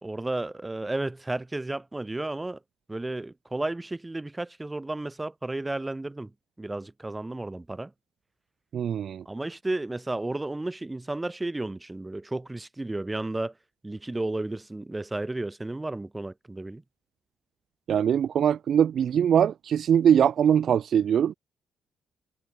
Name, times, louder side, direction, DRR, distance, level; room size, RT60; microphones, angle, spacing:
voice 1, 0.0-2.6 2.9-6.3 6.6-7.9 9.3-13.6 13.8-16.8, right 2 dB, 15° right, 2.5 m, -33 dB
voice 2, 8.7-9.2 17.9-21.3, right 8 dB, 60° right, 0.3 m, -22 dB
cardioid pair, 90°, 0 cm